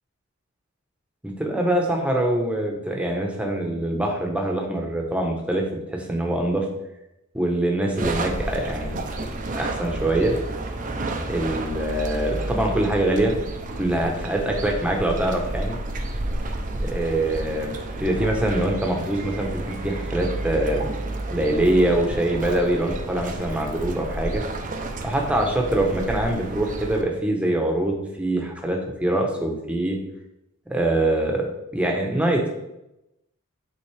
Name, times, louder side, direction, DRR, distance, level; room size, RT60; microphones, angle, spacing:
voice 1, 1.2-5.7 5.9-6.7 7.3-9.0 9.5-10.4 11.3-13.3 13.7-15.8 16.8-20.8 21.3-24.4 25.0-30.0 30.7-32.5, right 1 dB, 5° right, 1 dB, 0.9 m, -24 dB
sound 1, 8.0-27.0, right 2 dB, 35° right, 0.6 m, -31 dB
8.7 x 3.7 x 3.3 m, 0.89 s
head